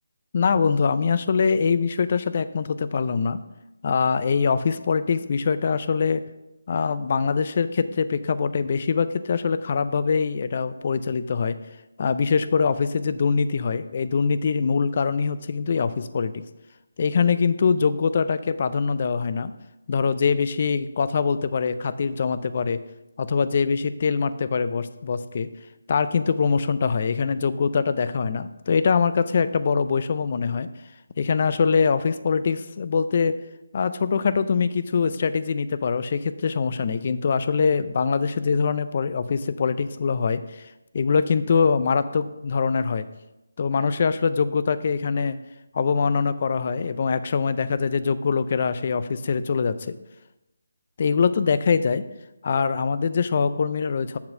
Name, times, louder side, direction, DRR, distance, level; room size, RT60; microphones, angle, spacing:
voice 1, 0.3-3.4 3.8-6.2 6.7-11.6 12.0-16.4 17.0-19.5 19.9-22.8 23.2-25.5 25.9-30.7 31.2-33.4 33.7-40.7 40.9-43.0 43.6-45.4 45.7-49.9 51.0-52.0 52.4-54.2, left 5 dB, 35° left, 13 dB, 0.3 m, -23 dB
7.1 x 4.0 x 6.3 m, 0.95 s
figure-of-eight pair, 170°, 0 cm